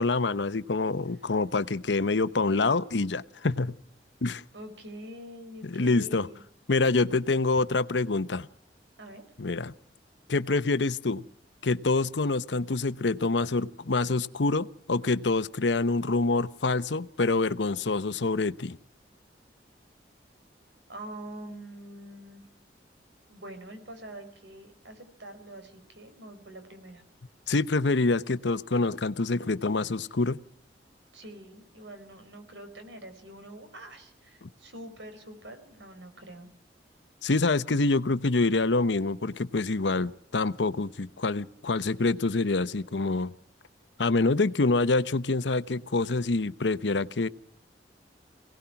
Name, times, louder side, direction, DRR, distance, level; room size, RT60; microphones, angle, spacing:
voice 1, 0.0-3.7 4.2-4.4 5.6-6.3 6.7-8.5 9.4-9.7 10.3-11.2 11.6-18.8 27.5-30.4 34.4-34.5 37.2-43.3 44.0-47.3, left 3 dB, 75° left, 0.8 m, -26 dB
voice 2, 4.5-6.4 9.0-9.2 20.9-22.4 23.3-27.0 31.1-36.5, right 1 dB, 80° right, 4.8 m, -45 dB
27.0 x 18.0 x 5.9 m
head